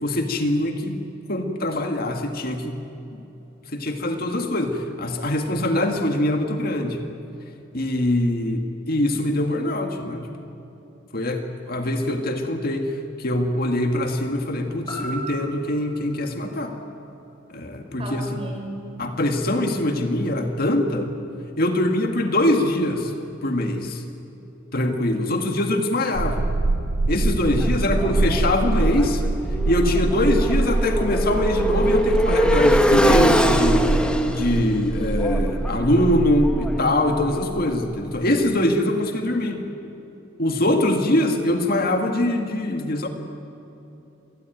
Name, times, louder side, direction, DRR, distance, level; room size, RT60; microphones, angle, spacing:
voice 1, 0.0-2.8 3.7-7.0 7.7-10.5 11.1-16.8 17.5-18.4 19.0-21.1 21.6-23.1 23.4-24.0 24.7-26.5 27.1-29.2 29.7-39.7 40.4-43.1, left 1 dB, 50° left, 4 dB, 2.1 m, -23 dB
sound 1, 14.9-18.9 19.4-19.5, right 1 dB, 20° left, 6.6 m, -40 dB
voice 2, 18.0-18.9 41.6-42.1, right 1 dB, 30° right, 1 dB, 5.8 m, -37 dB
sound 2, 26.1-38.4, right 2 dB, 85° right, 0.7 m, -25 dB
Motorcycle, 27.6-37.4, equal, 5° left, 1.5 m, -23 dB
26.5 x 20.0 x 9.3 m, 3.0 s
head